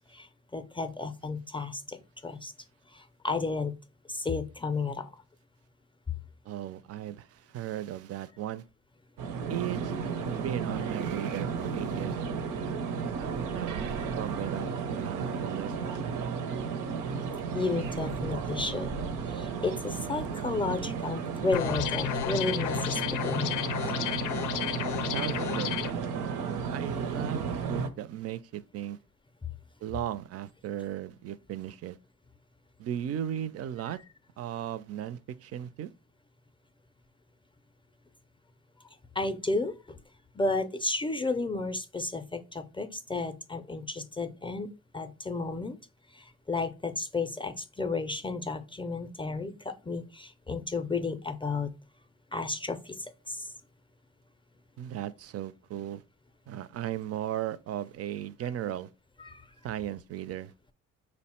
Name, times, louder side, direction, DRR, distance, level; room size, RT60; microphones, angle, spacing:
voice 1, 0.1-2.5 2.9-3.7 4.1-5.1 17.5-18.9 19.3-23.8 39.1-40.0 40.3-45.8 46.1-51.7 52.3-53.5 59.2-59.5, left 3 dB, 15° left, 0.4 m, -33 dB
voice 2, 6.5-8.6 9.5-10.0 10.3-12.2 13.2-15.7 24.3-24.4 25.0-26.0 26.7-29.0 29.8-32.0 32.8-34.0 34.4-35.9 54.8-56.0 56.5-58.9 59.6-60.5, right 11 dB, 55° right, 0.4 m, -36 dB
sound 1, 9.2-27.9, right 5 dB, 90° right, 0.7 m, -33 dB
sound 2, 21.5-25.9, left 11 dB, 80° left, 0.5 m, -32 dB
5.1 x 2.1 x 4.2 m
cardioid pair, 90°, 30 cm